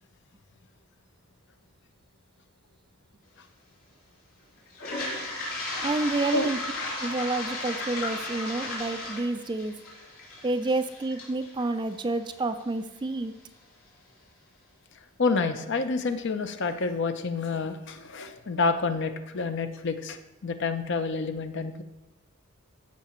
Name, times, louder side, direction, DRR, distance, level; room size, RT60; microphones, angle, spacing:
Toilet flush, 4.7-12.6, left 2 dB, 85° left, 3.3 m, -35 dB
voice 1, 5.8-6.6 7.0-9.7 10.4-13.3, right 2 dB, 20° right, 9 dB, 0.3 m, -29 dB
voice 2, 15.2-20.2 20.4-21.8, left 4 dB, 55° left, 9 dB, 0.6 m, -28 dB
14.5 x 5.7 x 3.0 m, 1.0 s
head